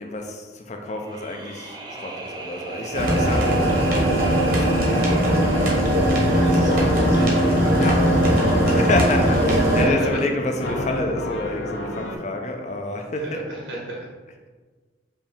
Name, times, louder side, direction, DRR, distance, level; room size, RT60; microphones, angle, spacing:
voice 1, 0.0-4.7 7.8-13.4, left 2 dB, 40° left, 3 dB, 0.5 m, -28 dB
sound 1, 0.9-8.0, right 2 dB, 25° right, 0.5 m, -37 dB
sound 2, 2.9-9.9, equal, 50° right, 1.0 m, -19 dB
voice 2, 6.4-7.9 9.6-10.2 13.2-14.1, right 1 dB, 80° right, -4 dB, 1.5 m, -34 dB
sound 3, 6.7-12.2, left 1 dB, 85° left, 0.6 m, -31 dB
5.3 x 2.7 x 3.4 m, 1.4 s
head